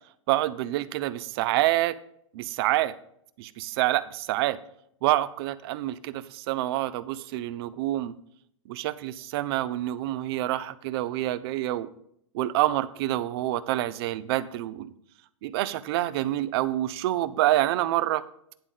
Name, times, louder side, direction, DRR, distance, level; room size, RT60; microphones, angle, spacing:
voice 1, 0.3-2.0 2.3-2.9 3.4-4.6 5.0-8.1 8.7-11.9 12.3-14.9 15.4-18.2, right 15 dB, 50° right, 16 dB, 0.6 m, -27 dB
10.5 x 3.6 x 7.3 m, 0.70 s
hypercardioid pair, 120°, 17 cm